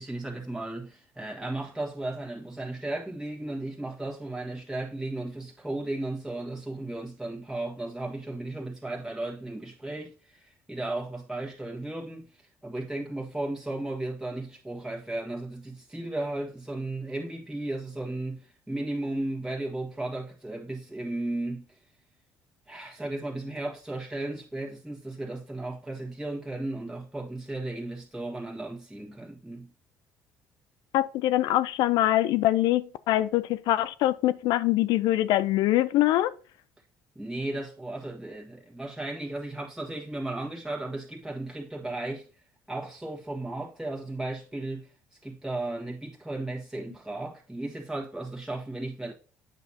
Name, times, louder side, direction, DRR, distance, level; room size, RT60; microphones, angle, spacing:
voice 1, 0.0-12.3 12.6-21.7 22.7-29.7 37.2-42.3 42.7-44.9 45.2-49.1, right 2 dB, 5° right, 1.6 m, -35 dB
voice 2, 30.9-36.3, left 15 dB, 70° left, 0.4 m, -24 dB
8.1 x 5.8 x 2.8 m
hypercardioid pair, 55°, 8 cm